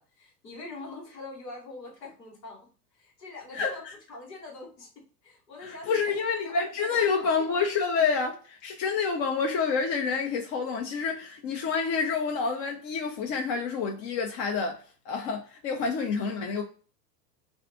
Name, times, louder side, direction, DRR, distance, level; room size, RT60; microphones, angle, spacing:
voice 1, 0.0-2.7 3.0-4.9 5.2-7.3, left 2 dB, 90° left, 1.5 m, -43 dB
voice 2, 3.5-3.9 5.6-16.6, left 5 dB, 35° left, 0.6 m, -28 dB
2.5 x 2.5 x 3.4 m
hypercardioid pair, 105°, 49 cm